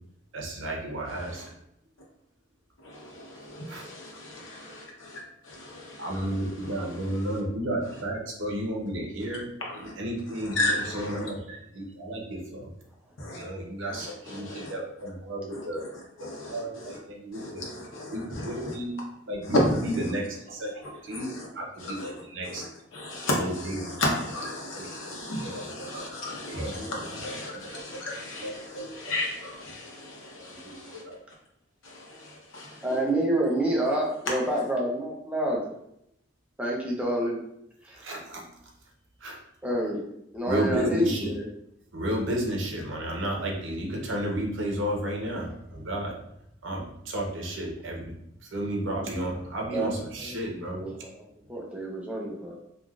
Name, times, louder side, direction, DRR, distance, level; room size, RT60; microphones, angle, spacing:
voice 1, 0.3-1.4 3.7-3.8 6.0-9.5 9.7-12.7 13.3-15.9 16.2-17.6 18.1-18.9 19.3-21.3 21.5-22.6 23.3-24.2 24.7-24.9 25.4-26.1 26.5-26.9 27.2-27.8 28.4-28.5 29.0-29.1 30.6-31.2 38.0-38.4 39.2-39.4 40.5-41.3 41.9-46.2 46.6-48.2 48.4-50.9, right 1 dB, 75° right, -1 dB, 0.7 m, -32 dB
voice 2, 2.8-6.1 6.7-6.8 9.6-9.9 10.4-11.3 13.2-13.4 14.0-14.7 15.5-15.9 16.2-17.0 17.3-18.7 19.5-19.7 21.1-21.5 21.8-22.1 22.4-22.7 22.9-31.0 31.8-32.8, left 1 dB, 85° left, -2 dB, 0.8 m, -33 dB
voice 3, 32.8-35.7 36.6-37.4 37.8-38.1 39.6-40.0 40.3-41.4 45.2-45.3 49.7-51.2 51.5-52.7, right 1 dB, 5° right, -3 dB, 0.5 m, -28 dB
3.4 x 2.4 x 2.3 m, 0.78 s
head